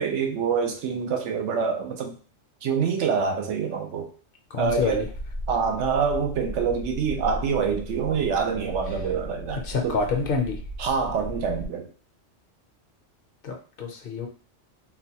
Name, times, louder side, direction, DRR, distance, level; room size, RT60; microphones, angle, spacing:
voice 1, 0.0-2.1 2.6-4.1 4.6-5.0 5.5-10.0 10.8-11.9, right 6 dB, 75° right, 4 dB, 0.9 m, -26 dB
voice 2, 4.5-5.1 9.6-10.6 13.4-14.3, left 5 dB, 55° left, 2 dB, 0.7 m, -27 dB
sound 1, 4.6-11.7, equal, 55° right, 0.5 m, -36 dB
4.0 x 2.2 x 2.8 m, 0.40 s
omnidirectional pair, 1.2 m